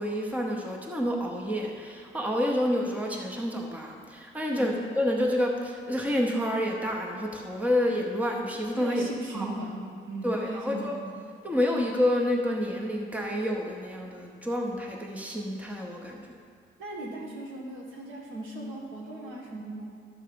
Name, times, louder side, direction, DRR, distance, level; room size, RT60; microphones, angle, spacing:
voice 1, 0.0-9.1 9.3-9.5 10.2-11.0 11.4-16.3, left 1 dB, 5° right, 0 dB, 0.9 m, -29 dB
voice 2, 8.7-11.2 16.8-19.9, right 1 dB, 90° right, -2 dB, 2.0 m, -38 dB
12.0 x 4.5 x 6.8 m, 2.1 s
wide cardioid pair, 160°, 20 cm